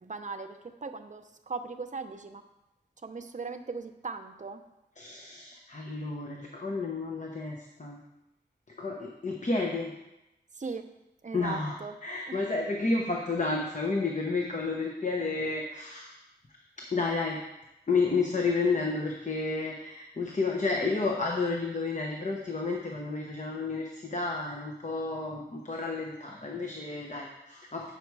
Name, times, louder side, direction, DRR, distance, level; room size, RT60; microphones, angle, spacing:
voice 1, 0.0-2.4 3.0-4.6 10.6-10.8 11.2-12.0 12.3-12.4, right 4 dB, 45° right, 7 dB, 0.7 m, -38 dB
voice 2, 5.0-8.0 8.8-9.9 11.3-11.7 12.0-16.1 16.9-17.4 17.9-27.9, left 3 dB, 40° left, 1 dB, 0.9 m, -31 dB
8.4 x 5.8 x 4.7 m, 0.94 s
wide cardioid pair, 85°, 18 cm